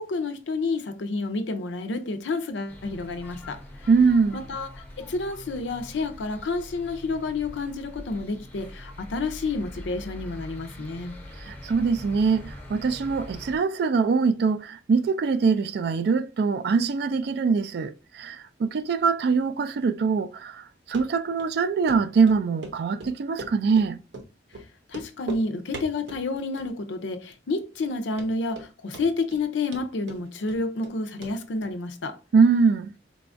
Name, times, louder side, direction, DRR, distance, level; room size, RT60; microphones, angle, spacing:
voice 1, 0.0-3.6 4.3-4.7 5.0-11.2 24.9-32.2, left 3 dB, 80° left, 0.5 m, -30 dB
sound 1, 2.7-13.6, left 1 dB, 10° left, 0.6 m, -43 dB
voice 2, 3.9-4.4 11.4-24.0 32.3-32.9, right 5 dB, 60° right, 0.3 m, -23 dB
Run, 20.9-21.1 21.4-21.5 21.9-22.0 22.3-22.8 23.0-23.9 24.1-24.3 24.5-24.6 24.9-25.4 25.7-26.2 26.6-27.0 27.3-27.4 27.8-27.9 28.2-28.7 28.9-29.4 29.7-30.9 31.2-31.3 31.6-31.7, right 2 dB, 80° right, 0.8 m, -39 dB
4.0 x 2.3 x 2.5 m
head